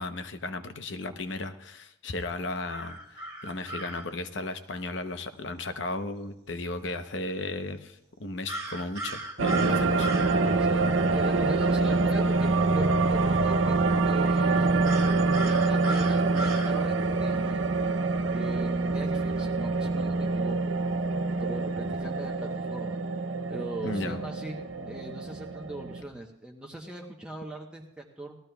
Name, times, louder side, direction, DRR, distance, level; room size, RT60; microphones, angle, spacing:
voice 1, 0.0-10.1 23.8-24.2, left 2 dB, 65° left, 8 dB, 0.9 m, -35 dB
sound 1, 2.7-4.1 8.5-10.4 14.8-16.7, right 1 dB, 20° right, 1.7 m, -36 dB
sound 2, 9.4-26.0, right 3 dB, 80° right, 0.6 m, -26 dB
voice 2, 10.6-17.6 18.3-20.8 21.2-23.0 23.5-28.4, right 2 dB, 5° right, -1 dB, 0.9 m, -40 dB
18.5 x 14.0 x 2.3 m, 0.86 s
head